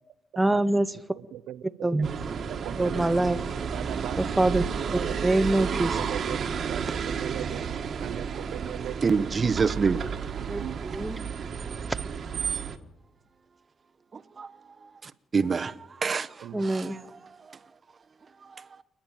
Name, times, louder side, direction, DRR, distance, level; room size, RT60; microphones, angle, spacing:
voice 1, 0.4-1.0 1.8-2.1 2.8-3.4 4.2-4.6 4.9-6.0 10.5-11.2 16.5-17.0, right 2 dB, 10° right, 1.0 m, -25 dB
sound 1, 2.0-12.8, right 6 dB, 55° right, 1.6 m, -32 dB
voice 2, 2.5-3.1 3.7-4.2 5.0-5.4 6.0-7.7 8.0-8.9 10.6-10.8 16.4-16.6, right 12 dB, 80° right, 0.7 m, -38 dB
voice 3, 9.0-10.0 14.1-14.5 14.8-15.7 16.0-17.0, right 5 dB, 40° right, 1.0 m, -27 dB
28.5 x 10.5 x 9.1 m
cardioid pair, 90°, 0 cm